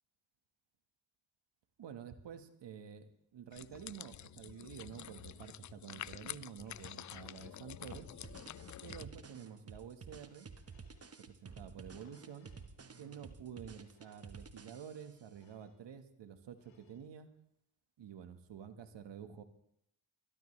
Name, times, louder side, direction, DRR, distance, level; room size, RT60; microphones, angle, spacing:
voice 1, 1.8-8.1 8.8-10.5 11.2-12.5 13.0-17.3 18.0-19.4, right 8 dB, 65° right, 9 dB, 1.6 m, -50 dB
sound 1, 3.5-9.1, left 11 dB, 40° left, 0.5 m, -48 dB
sound 2, 5.0-5.7 6.7-7.6 8.6-9.3 10.5-11.2 12.0-12.7 13.7-14.4 15.2-15.8 16.5-17.1, left 6 dB, 75° left, 2.9 m, -70 dB
sound 3, 7.9-15.2, right 5 dB, 30° right, 1.4 m, -52 dB
23.0 x 12.5 x 3.3 m, 0.72 s
supercardioid pair, 55°, 46 cm